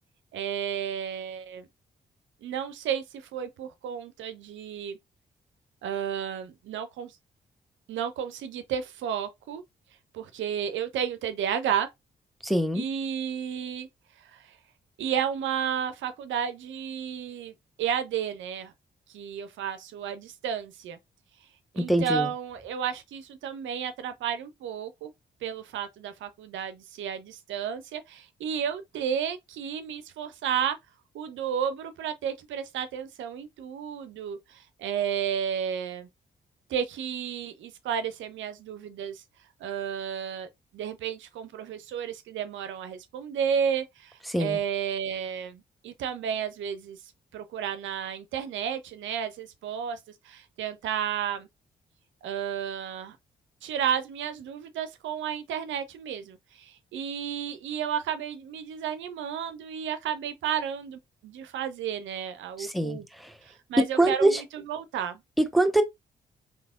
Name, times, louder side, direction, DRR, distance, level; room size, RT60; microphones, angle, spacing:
voice 1, 0.3-1.7 2.4-5.0 5.8-7.1 7.9-9.6 10.1-11.9 12.7-13.9 14.3-14.4 15.0-17.5 17.8-18.7 19.1-21.0 21.7-25.1 25.4-30.8 31.1-36.1 36.7-39.2 39.6-47.0 47.3-50.0 50.2-51.5 52.2-53.2 53.6-63.0 63.5-65.2, right 8 dB, 65° right, 0.5 m, -32 dB
voice 2, 12.4-12.8 21.8-22.3 44.3-44.6 62.6-63.3 64.0-64.4 65.4-65.8, right 1 dB, ahead, 0.7 m, -24 dB
3.3 x 3.0 x 2.3 m
hypercardioid pair, 40°, 21 cm